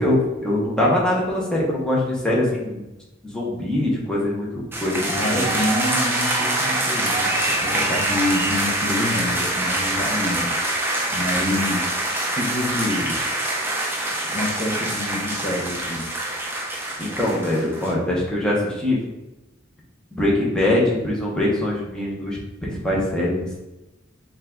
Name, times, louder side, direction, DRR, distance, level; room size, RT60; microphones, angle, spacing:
voice 1, 0.0-2.8 3.2-5.4 11.3-11.6 17.0-19.0 20.1-23.6, left 1 dB, 5° left, -5 dB, 1.0 m, -23 dB
sound 1, 4.7-17.9, right 1 dB, 10° right, 0.6 m, -24 dB
voice 2, 5.1-10.5 11.1-12.0 12.3-13.2 14.3-16.1, left 1 dB, 35° left, 0 dB, 0.9 m, -27 dB
5.3 x 2.6 x 3.7 m, 0.99 s
head